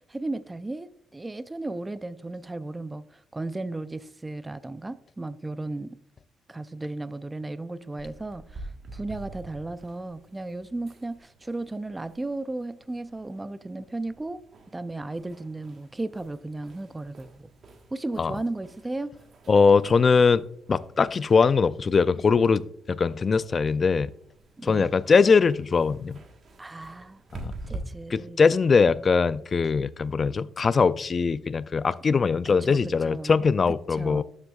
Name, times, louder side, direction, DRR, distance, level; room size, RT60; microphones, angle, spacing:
voice 1, 0.0-6.0 6.5-14.4 14.7-17.5 17.9-19.1 24.6-24.9 26.6-27.2 27.7-28.4 32.4-32.8 33.1-33.3 33.9-34.2, right 2 dB, 15° right, 0.5 m, -35 dB
sound 1, 8.0-27.8, right 2 dB, 55° right, 1.3 m, -47 dB
voice 2, 19.5-22.6 22.9-24.1 24.6-26.2 27.3-27.5 28.1-34.2, left 5 dB, 40° left, 0.3 m, -21 dB
11.5 x 7.3 x 2.4 m
cardioid pair, 90°, 0 cm